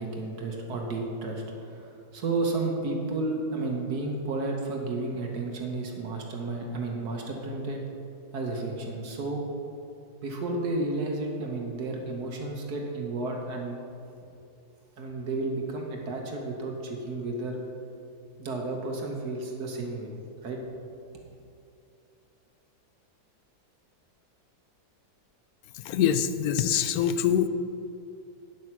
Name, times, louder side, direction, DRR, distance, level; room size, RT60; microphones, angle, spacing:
voice 1, 0.0-7.8 8.3-9.4 10.2-13.8 15.0-17.6 18.4-20.1 20.4-20.6, right 2 dB, 70° right, 1 dB, 1.7 m, -32 dB
voice 2, 25.8-27.5, left 9 dB, 70° left, 11 dB, 1.0 m, -24 dB
9.5 x 7.6 x 6.0 m, 2.7 s
omnidirectional pair, 1.8 m